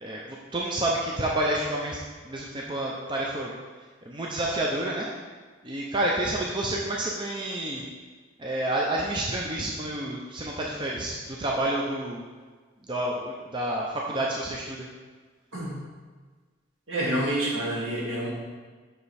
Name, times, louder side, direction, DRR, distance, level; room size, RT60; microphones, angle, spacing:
voice 1, 0.0-2.0 2.2-3.5 4.1-5.1 5.6-7.8 8.4-12.2 12.9-14.8, right 1 dB, 25° right, -3 dB, 0.5 m, -29 dB
voice 2, 16.9-18.3, right 1 dB, 75° right, -5 dB, 2.0 m, -28 dB
5.7 x 5.0 x 4.1 m, 1.4 s
head